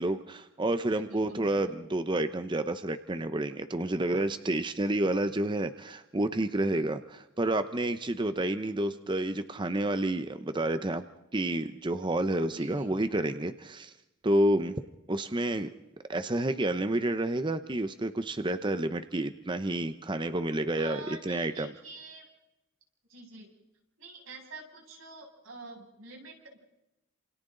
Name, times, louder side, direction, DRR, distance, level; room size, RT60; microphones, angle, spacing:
voice 1, 0.0-11.0 11.3-13.9 14.2-14.7 15.1-15.7 16.1-21.7, right 1 dB, 25° right, 10 dB, 0.8 m, -29 dB
voice 2, 0.9-1.5 12.5-12.9 20.7-22.3 23.1-23.5 24.0-26.6, right 3 dB, 90° right, 0 dB, 7.2 m, -47 dB
29.5 x 28.0 x 3.9 m, 0.96 s
head